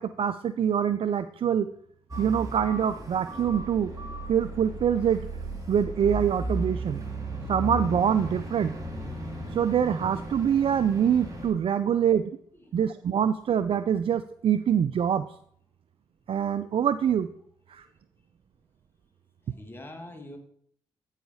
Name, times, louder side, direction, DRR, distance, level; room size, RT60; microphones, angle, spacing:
voice 1, 0.0-1.7 2.2-3.9 4.3-5.2 5.7-7.0 7.5-8.7 9.5-12.3 12.7-15.2 16.3-17.3 17.7-17.8, right 8 dB, 50° right, 13 dB, 0.4 m, -25 dB
sound 1, 2.1-11.5, right 1 dB, 30° right, 2.8 m, -35 dB
voice 2, 19.4-20.4, left 1 dB, 20° left, 3 dB, 1.8 m, -46 dB
9.0 x 4.8 x 5.5 m, 0.64 s
hypercardioid pair, 45°, 12 cm